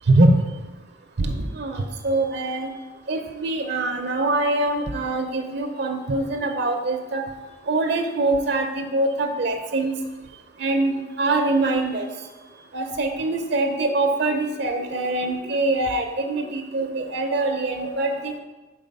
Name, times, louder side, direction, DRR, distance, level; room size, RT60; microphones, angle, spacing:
voice 1, 1.2-2.7 3.1-7.2 7.7-9.9 10.6-12.1 12.7-18.3, right 2 dB, 60° right, 4 dB, 0.5 m, -23 dB
4.8 x 3.8 x 5.3 m, 1.2 s
head